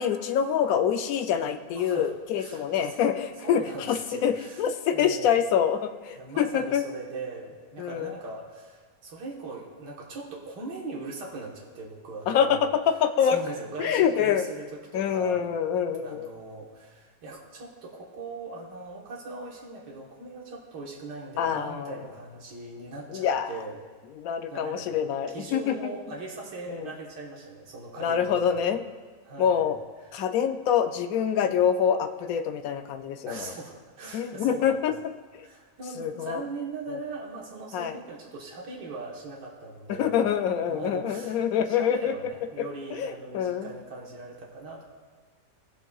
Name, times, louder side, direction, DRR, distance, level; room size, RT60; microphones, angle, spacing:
voice 1, 0.0-3.6 3.9-6.8 7.8-8.1 12.3-13.4 13.8-14.4 14.9-16.3 21.4-21.9 23.1-23.5 24.2-25.9 26.7-26.9 28.0-28.8 29.4-29.8 30.1-33.5 34.1-34.9 35.3-35.4 36.0-36.4 37.7-37.9 39.9-42.1 42.9-43.7, left 8 dB, 70° left, 8 dB, 0.9 m, -26 dB
voice 2, 1.8-2.1 2.4-3.0 3.4-4.6 4.9-5.4 6.1-12.7 13.2-15.5 16.0-23.8 24.5-24.9 25.3-28.7 29.2-29.7 33.2-34.8 35.4-40.3 40.7-44.8, right 3 dB, 90° right, -3 dB, 1.9 m, -40 dB
17.0 x 6.9 x 2.3 m, 1.5 s
omnidirectional pair, 1.8 m